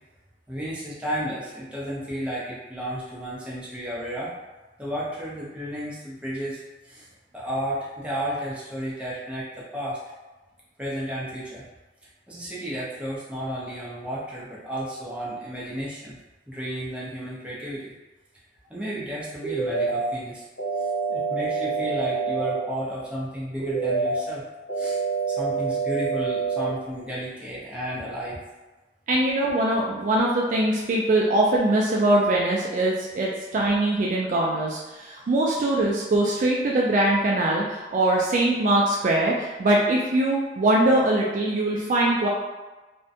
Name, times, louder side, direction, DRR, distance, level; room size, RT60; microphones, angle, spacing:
voice 1, 0.5-4.3 4.8-7.1 7.3-10.0 10.8-11.6 12.3-16.1 16.5-17.9 18.7-20.4 20.8-24.4 24.8-25.0 25.3-28.4, equal, 5° right, -7 dB, 0.6 m, -32 dB
sound 1, 19.4-20.0 20.6-22.6 23.6-24.2 24.7-26.7, right 4 dB, 85° left, 1.2 m, -26 dB
voice 2, 29.1-42.3, right 1 dB, 45° right, -3 dB, 0.3 m, -22 dB
2.5 x 2.1 x 2.6 m, 1.2 s
head